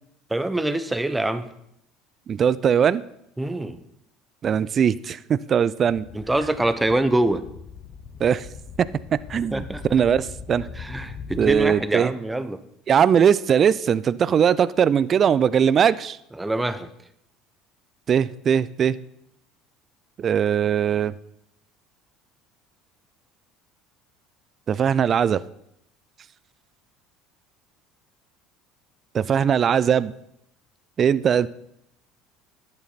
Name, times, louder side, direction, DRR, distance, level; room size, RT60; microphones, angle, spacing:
voice 1, 0.3-1.5 3.4-3.8 6.1-7.4 9.5-9.8 10.8-12.6 16.4-16.9, right 1 dB, 10° right, 11 dB, 0.9 m, -24 dB
voice 2, 2.3-3.0 4.4-6.0 8.2-8.5 8.8-8.9 9.3-9.6 9.9-10.6 11.4-12.1 12.9-16.2 18.1-19.0 20.2-21.1 24.7-25.4 29.1-30.1 31.0-31.5, right 8 dB, 40° right, 18 dB, 0.4 m, -20 dB
sound 1, 5.8-11.7, left 6 dB, 50° left, 0.9 m, -40 dB
11.0 x 9.0 x 4.2 m, 0.75 s
hypercardioid pair, 70°, 0 cm